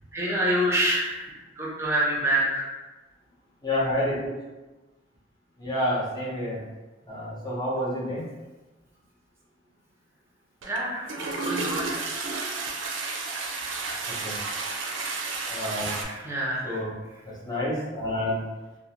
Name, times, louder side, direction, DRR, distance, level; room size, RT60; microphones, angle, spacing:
voice 1, 0.1-1.3 1.6-2.7 10.6-12.0 14.3-14.4 15.9-16.8, right 1 dB, 15° right, -4 dB, 0.5 m, -27 dB
voice 2, 3.6-4.3 5.6-6.6 7.1-8.2 14.2-14.4 15.5-16.0 16.6-16.9 17.2-18.4, left 1 dB, 20° left, -6 dB, 0.7 m, -28 dB
Toilet flush, 10.6-10.8 11.0-16.0, right 3 dB, 80° right, 0.4 m, -32 dB
2.5 x 2.0 x 2.8 m, 1.1 s
head